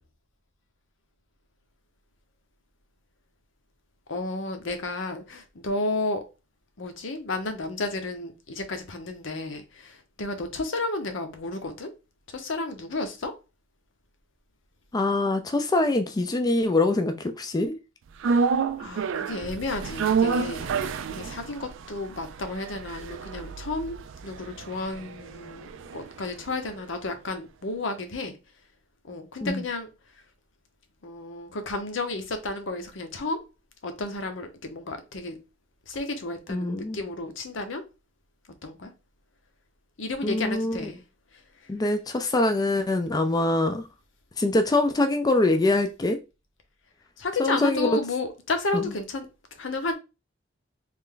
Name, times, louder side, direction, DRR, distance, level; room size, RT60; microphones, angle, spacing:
voice 1, 4.1-6.2 6.8-11.9 12.3-13.3 18.8-24.0 24.2-28.4 29.1-29.9 31.0-33.4 33.8-35.4 35.9-37.8 38.6-38.9 40.0-41.0 47.2-49.3 49.6-49.9, left 2 dB, 75° left, 0.7 m, -32 dB
voice 2, 14.9-17.8 29.4-29.6 36.5-37.0 40.2-40.9 41.7-43.8 44.4-46.2 47.4-48.0 48.7-48.9, left 2 dB, 20° left, 0.4 m, -24 dB
sound 1, 18.2-26.5 26.8-26.9, right 5 dB, 80° right, 0.4 m, -29 dB
3.3 x 2.5 x 3.7 m
head